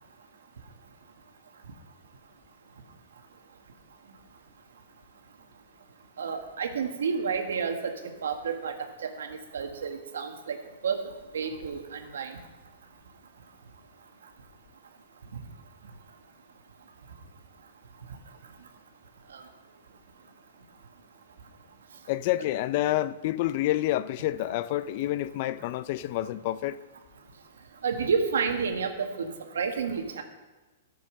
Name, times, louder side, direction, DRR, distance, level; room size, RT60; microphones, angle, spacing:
voice 1, 6.2-8.7 9.0-10.6 10.8-11.0 11.3-12.4 19.3-19.4 27.8-29.3 29.5-30.2, right 6 dB, 90° right, 1.6 m, -30 dB
voice 2, 22.1-26.8, left 14 dB, 45° left, 0.4 m, -28 dB
13.5 x 6.9 x 6.4 m
hypercardioid pair, 145°, 0 cm